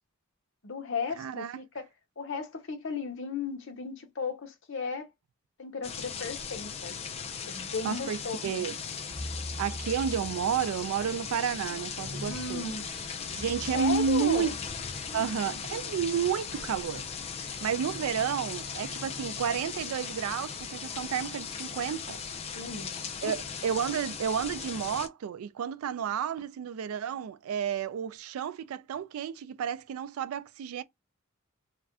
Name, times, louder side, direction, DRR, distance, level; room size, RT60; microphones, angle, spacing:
voice 1, 0.6-1.9 2.2-5.1 5.6-7.0 7.4-8.7 12.3-12.9 13.7-14.6 15.1-15.3 22.5-22.9 23.2-23.4 23.9-24.0, left 4 dB, 60° left, 0.7 m, -35 dB
voice 2, 1.2-1.6 7.8-8.8 9.6-12.7 13.3-14.6 15.1-17.1 17.4-22.2 23.2-30.8, right 7 dB, 90° right, 0.3 m, -31 dB
sound 1, 5.8-25.1, left 6 dB, 30° left, 0.3 m, -38 dB
sound 2, 8.8-23.9, left 1 dB, 5° right, 1.0 m, -47 dB
2.4 x 2.2 x 3.4 m
head